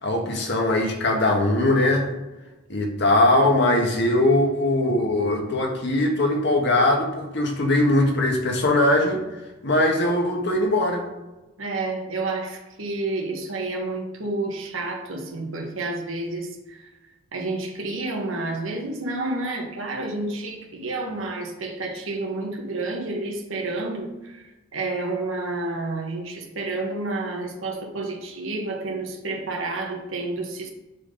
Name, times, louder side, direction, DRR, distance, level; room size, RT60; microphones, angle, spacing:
voice 1, 0.0-2.1 2.7-9.2 9.6-11.0, left 1 dB, 60° left, 1 dB, 1.4 m, -21 dB
voice 2, 11.6-16.9 17.3-30.7, right 2 dB, 85° right, 1 dB, 1.4 m, -30 dB
7.4 x 4.0 x 5.2 m, 1.1 s
head